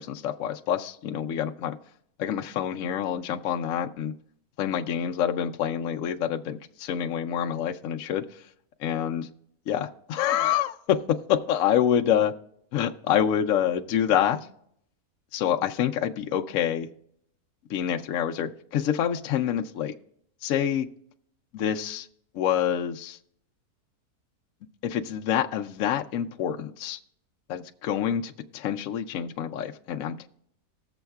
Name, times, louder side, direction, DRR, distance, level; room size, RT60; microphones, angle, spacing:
voice 1, 0.0-1.8 2.2-4.1 4.6-8.3 8.8-9.3 9.7-12.3 12.7-14.4 15.3-16.9 17.7-20.0 20.4-20.9 21.5-22.1 22.3-23.2 24.8-27.0 27.5-30.3, left 9 dB, 70° left, 4 dB, 0.8 m, -27 dB
20.0 x 7.0 x 2.3 m, 0.70 s
omnidirectional pair, 1.7 m